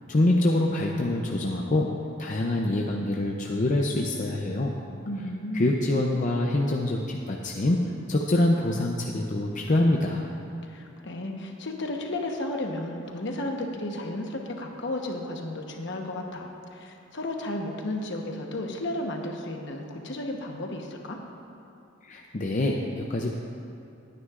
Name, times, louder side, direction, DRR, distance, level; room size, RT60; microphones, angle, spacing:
voice 1, 0.1-1.9 2.2-4.7 5.5-7.8 8.1-10.3 22.0-23.3, left 1 dB, 40° left, 0 dB, 0.6 m, -25 dB
voice 2, 5.0-5.8 10.6-21.2, left 1 dB, 60° left, 2 dB, 1.1 m, -33 dB
20.5 x 9.5 x 2.5 m, 2.6 s
head